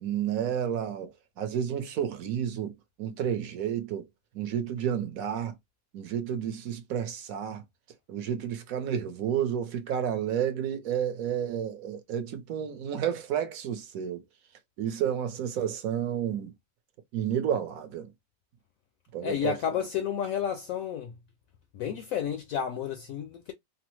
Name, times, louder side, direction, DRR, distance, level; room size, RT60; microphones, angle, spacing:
voice 1, 0.0-1.1 1.4-2.7 3.0-4.0 4.3-5.5 5.9-7.6 8.1-14.2 14.8-16.5 17.1-18.1 19.1-19.5, right 9 dB, 65° right, 1.1 m, -31 dB
voice 2, 19.2-21.1 21.7-23.5, left 8 dB, 70° left, 0.8 m, -31 dB
3.3 x 2.0 x 3.0 m
omnidirectional pair, 1.7 m